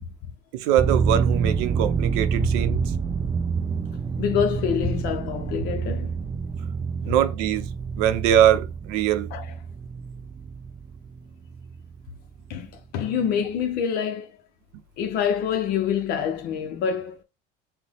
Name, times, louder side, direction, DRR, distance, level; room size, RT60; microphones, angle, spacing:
voice 1, 0.5-2.8 7.0-7.7 8.0-9.3, right 11 dB, 80° right, 0.7 m, -22 dB
sound 1, 0.8-12.1 12.4-12.5, right 5 dB, 20° right, 0.3 m, -27 dB
voice 2, 2.4-2.8 4.2-6.2 7.0-7.1 9.3-9.5 12.5-14.4 15.0-17.2, left 8 dB, 55° left, 0.7 m, -26 dB
5.7 x 2.2 x 3.5 m
cardioid pair, 135°, 19 cm